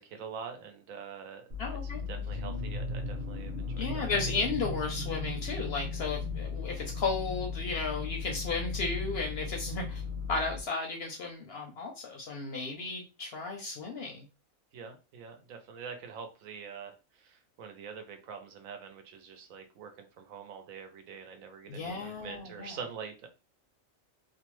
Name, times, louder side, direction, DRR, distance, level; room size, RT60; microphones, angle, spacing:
voice 1, 0.0-1.4 1.8-4.1 14.7-23.3, right 6 dB, 80° right, 6 dB, 1.0 m, -45 dB
sound 1, 1.5-10.6, left 4 dB, 50° right, 0.6 m, -36 dB
voice 2, 1.6-2.0 3.8-10.0 10.3-14.3 21.7-22.8, left 4 dB, 65° left, 2 dB, 0.6 m, -34 dB
2.7 x 2.1 x 3.0 m, 0.31 s
omnidirectional pair, 1.5 m